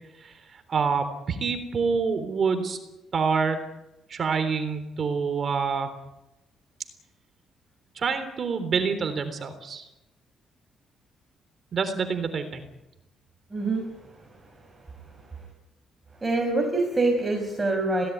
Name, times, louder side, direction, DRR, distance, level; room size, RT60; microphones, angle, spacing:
voice 1, 0.7-2.8 3.1-3.6 4.1-5.9 8.0-9.8 11.7-12.6, right 5 dB, 50° right, 9 dB, 3.6 m, -26 dB
voice 2, 13.5-15.5 16.1-18.1, right 2 dB, 20° right, 2 dB, 6.6 m, -27 dB
21.5 x 18.0 x 9.5 m, 0.94 s
cardioid pair, 90°, 0 cm